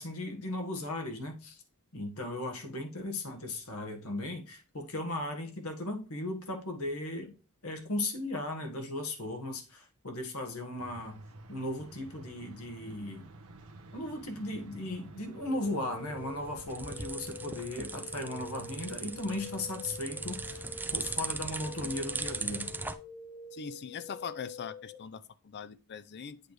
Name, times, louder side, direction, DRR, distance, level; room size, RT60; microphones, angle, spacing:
voice 1, 0.0-1.6 1.9-7.3 7.6-11.2 11.5-13.3 13.9-22.7, left 1 dB, 70° left, 1.5 m, -37 dB
sound 1, 10.8-21.2, right 2 dB, 70° right, 0.9 m, -51 dB
sound 2, 15.4-25.0, left 3 dB, 25° left, 1.1 m, -47 dB
sound 3, 16.2-22.9, right 3 dB, 10° right, 0.4 m, -39 dB
voice 2, 23.5-26.4, left 6 dB, 50° left, 0.5 m, -41 dB
8.2 x 3.3 x 4.7 m
head